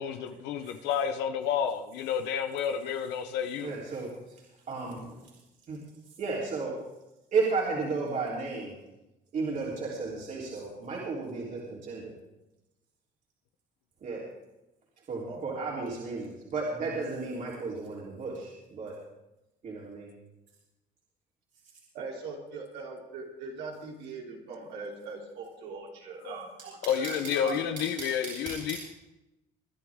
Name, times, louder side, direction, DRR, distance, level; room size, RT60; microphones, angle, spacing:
voice 1, 0.0-3.7 26.2-26.4 26.9-28.8, left 8 dB, 85° left, 0.8 m, -30 dB
voice 2, 3.6-4.4 4.7-5.2 5.7-5.8 6.2-6.7 7.3-8.7 9.3-12.1 14.0-14.2 15.1-18.9 19.6-20.1, right 4 dB, 50° right, 3.5 m, -33 dB
voice 3, 21.9-27.6, right 4 dB, 90° right, 3.4 m, -41 dB
23.0 x 10.5 x 3.6 m
cardioid pair, 110°, 17 cm